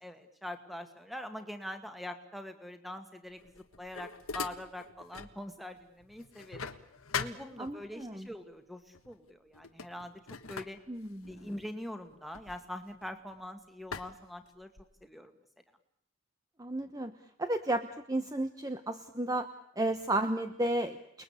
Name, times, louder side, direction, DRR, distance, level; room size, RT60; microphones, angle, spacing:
voice 1, 0.0-6.7 7.2-10.1 10.5-10.8 11.3-14.7 15.0-15.3, left 1 dB, ahead, 8 dB, 2.2 m, -43 dB
sound 1, 3.4-5.4 5.8-8.1 8.9-9.2 9.5-13.4 13.9-15.0, left 6 dB, 75° left, 1.5 m, -42 dB
voice 2, 7.6-8.3 10.9-11.3 16.6-17.1 17.4-19.5 19.8-21.0, right 1 dB, 15° right, 8 dB, 1.1 m, -32 dB
29.5 x 21.0 x 8.5 m, 0.72 s
head